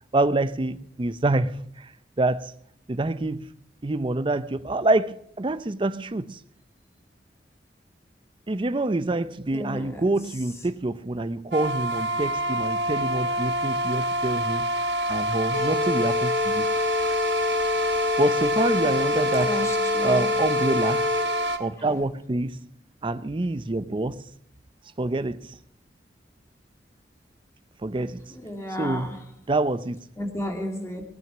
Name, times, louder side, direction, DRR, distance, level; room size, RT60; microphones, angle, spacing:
voice 1, 0.1-2.5 2.9-3.5 3.8-6.4 8.5-16.7 18.2-19.6 20.0-21.1 21.6-22.7 23.0-24.2 25.0-25.6 27.8-28.3 28.8-29.1 29.5-30.0, right 2 dB, 30° right, 0.6 m, -26 dB
voice 2, 9.5-10.0 17.8-17.9 19.4-20.3 28.3-29.2 30.2-31.0, left 1 dB, 15° left, 2.4 m, -33 dB
sound 1, 11.5-21.6, right 1 dB, 75° right, 1.4 m, -27 dB
sound 2, 15.5-21.5, left 4 dB, 75° left, 5.3 m, -27 dB
18.5 x 9.2 x 6.0 m
head